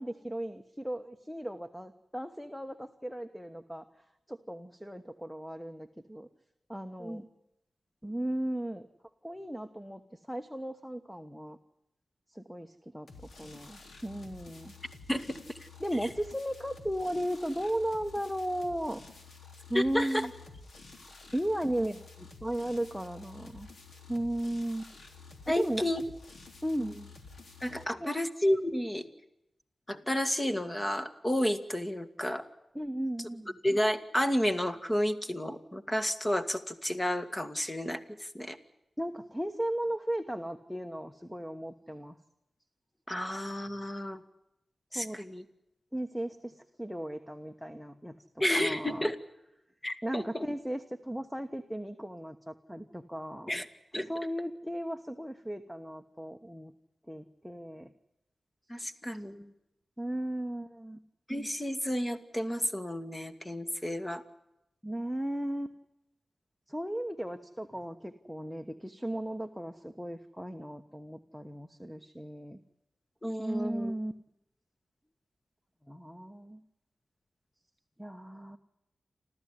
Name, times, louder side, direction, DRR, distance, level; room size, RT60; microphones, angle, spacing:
voice 1, 0.0-3.8 4.3-6.3 6.7-7.3 8.0-8.9 9.2-11.6 12.3-14.7 15.8-19.0 19.7-20.3 21.3-23.7 24.1-24.9 25.4-25.8 26.6-27.0 27.7-28.2 32.7-33.6 39.0-42.2 44.9-45.2 45.9-48.2 48.6-49.1 50.0-53.5 54.1-56.7 57.1-57.9 60.0-61.0 64.8-65.7 66.7-72.6 73.4-74.1 75.9-76.6 78.0-78.6, right 1 dB, ahead, 8 dB, 1.2 m, -36 dB
sound 1, 13.1-27.8, left 4 dB, 70° left, 3.6 m, -51 dB
voice 2, 19.7-20.3 25.5-26.0 27.6-29.1 29.9-32.4 33.6-38.6 43.1-44.2 44.9-45.4 48.4-49.2 49.8-50.4 53.5-53.7 53.9-54.1 58.7-59.5 61.3-64.2 73.2-73.9, equal, 15° left, 9 dB, 2.0 m, -31 dB
29.0 x 14.0 x 9.6 m, 0.86 s
wide cardioid pair, 100°, 0 cm